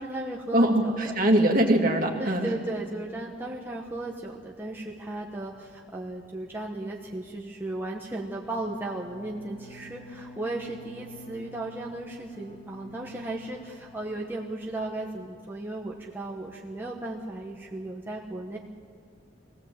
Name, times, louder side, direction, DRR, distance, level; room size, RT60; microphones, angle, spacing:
voice 1, 0.0-1.0 2.2-18.6, right 2 dB, 10° right, -3 dB, 1.2 m, -35 dB
voice 2, 0.5-2.5, right 1 dB, 45° right, 1 dB, 2.4 m, -22 dB
Bowed string instrument, 8.4-15.1, right 1 dB, 25° left, 3.1 m, -49 dB
23.0 x 17.0 x 7.8 m, 2.2 s
head